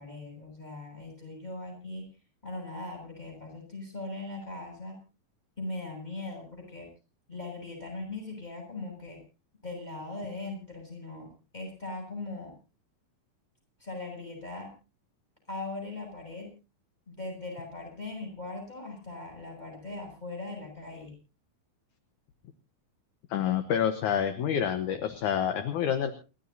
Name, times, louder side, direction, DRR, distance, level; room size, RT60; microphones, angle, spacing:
voice 1, 0.0-2.0 2.4-5.0 5.6-6.9 7.3-9.2 9.6-12.5 13.8-14.7 15.5-16.5 17.1-21.1, left 2 dB, 10° left, 2 dB, 7.7 m, -40 dB
voice 2, 23.3-26.1, left 9 dB, 65° left, 9 dB, 2.2 m, -28 dB
29.0 x 14.0 x 2.7 m, 0.32 s
omnidirectional pair, 4.3 m